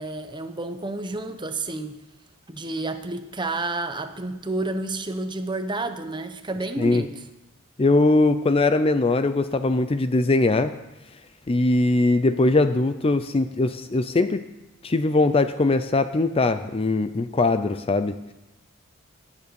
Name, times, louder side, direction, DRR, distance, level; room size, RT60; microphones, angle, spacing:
voice 1, 0.0-2.0 2.5-7.1, right 2 dB, 20° right, 8 dB, 0.9 m, -30 dB
voice 2, 7.8-10.7 11.5-14.4 14.8-18.2, left 2 dB, 25° left, 11 dB, 0.5 m, -21 dB
18.0 x 7.2 x 6.9 m, 0.98 s
head